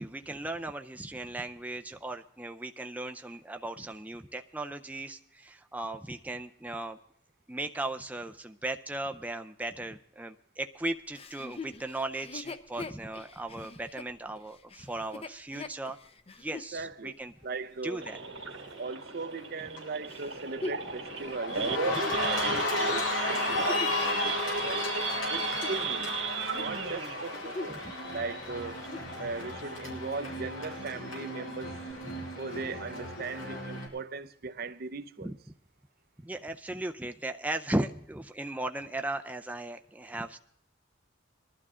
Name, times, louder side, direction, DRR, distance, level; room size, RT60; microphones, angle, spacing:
voice 1, 0.0-7.0 7.5-16.0 16.4-17.3 17.8-18.2 21.9-22.1 22.4-22.6 27.7-27.9 32.0-32.1 35.2-35.4 36.2-40.4, right 2 dB, 10° right, 0.5 m, -37 dB
Chuckle chortle, 11.1-16.7 17.3-17.4 20.1-24.1 24.7-26.2 26.4-26.7 27.2-27.9 28.2-28.3 28.7-29.2 29.8-29.9, left 3 dB, 30° left, 0.7 m, -43 dB
voice 2, 16.5-17.1 17.4-18.0 18.8-21.6 22.1-23.1 23.5-24.8 25.3-26.1 26.5-27.8 28.1-28.8 29.2-31.7 32.4-35.3, right 4 dB, 50° right, 0.6 m, -38 dB
Idling / Accelerating revving vroom / Sawing, 18.0-29.1 29.5-29.7 30.0-30.1 30.5-30.8 31.3-31.4 31.6-31.9, right 5 dB, 80° right, 2.1 m, -35 dB
Cheering, 19.0-19.4 19.8-33.9, left 2 dB, 90° left, 4.4 m, -34 dB
20.5 x 12.0 x 3.7 m
head